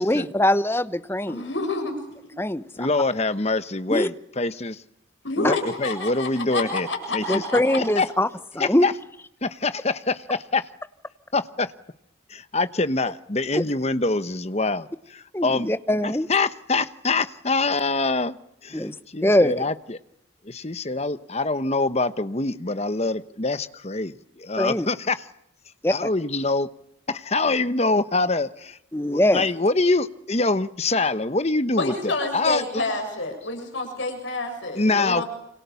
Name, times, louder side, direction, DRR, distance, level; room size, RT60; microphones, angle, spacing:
voice 1, 0.0-1.5 2.4-2.9 3.9-4.1 5.4-5.6 7.3-8.3 8.5-8.9 13.5-13.6 15.3-16.3 18.7-18.9 19.2-19.5 24.6-24.9 25.8-25.9 28.9-29.5, left 1 dB, 10° left, 12 dB, 0.9 m, -22 dB
voice 2, 1.3-1.9 2.2-2.3 5.2-7.8 31.8-35.2, left 2 dB, 70° left, 5 dB, 7.2 m, -28 dB
voice 3, 2.8-4.8 5.4-6.9 7.1-7.4 7.8-8.1 8.6-8.9 9.4-10.7 11.3-11.7 12.3-15.7 16.0-18.4 18.6-20.0 20.4-25.2 25.9-26.7 27.1-28.8 29.1-32.6 34.8-35.2, left 3 dB, 30° left, 12 dB, 1.1 m, -25 dB
28.5 x 26.0 x 7.1 m, 0.78 s
head